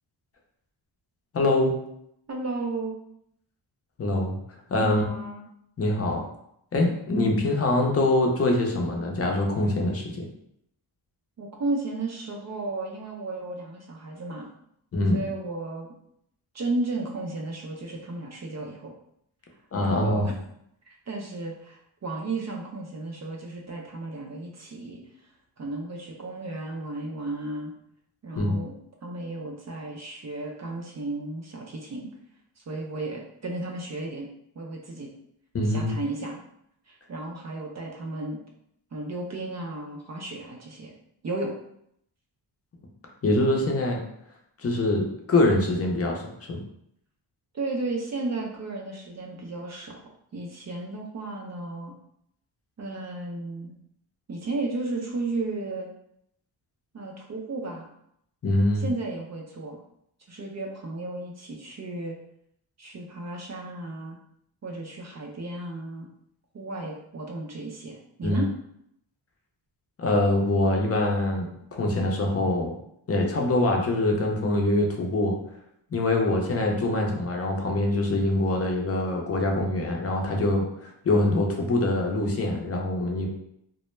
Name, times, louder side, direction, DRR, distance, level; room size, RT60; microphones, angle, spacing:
voice 1, 1.3-1.7 4.0-4.3 4.7-5.0 5.8-6.2 6.7-10.2 14.9-15.2 19.7-20.2 28.4-28.6 35.5-35.9 43.2-44.0 44.6-46.2 46.5-46.6 58.4-58.9 68.2-68.4 70.0-72.7 73.1-75.4 75.9-83.3, left 2 dB, 30° left, 1 dB, 0.6 m, -24 dB
voice 2, 2.3-3.0 4.8-5.4 11.4-14.5 15.1-15.9 16.5-18.9 19.8-20.3 20.8-25.0 25.6-27.7 28.2-28.7 29.0-32.1 32.6-34.3 34.6-35.1 35.6-36.4 36.9-38.4 38.9-40.9 41.2-41.5 47.5-50.0 50.3-51.9 52.8-53.7 54.3-55.9 56.9-57.9 58.7-59.8 60.3-62.2 62.8-64.2 64.6-66.1 66.5-68.5, right 2 dB, 35° right, 0 dB, 0.4 m, -34 dB
2.2 x 2.1 x 3.0 m, 0.74 s
cardioid pair, 80°, 48 cm